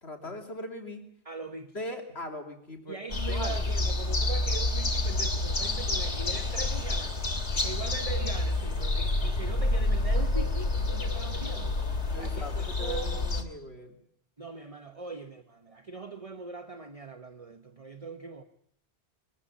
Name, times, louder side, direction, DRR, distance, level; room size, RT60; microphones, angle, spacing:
voice 1, 0.0-1.1 1.7-3.0 3.3-3.6 12.1-14.0 15.1-15.2, left 1 dB, 70° left, 4 dB, 3.4 m, -40 dB
voice 2, 1.2-1.8 2.9-7.2 7.6-11.7 12.2-13.3 14.4-18.4, right 4 dB, 35° right, 8 dB, 1.2 m, -41 dB
sound 1, 3.1-13.4, left 2 dB, 85° left, 3.0 m, -28 dB
22.5 x 14.5 x 9.8 m, 0.68 s
omnidirectional pair, 1.1 m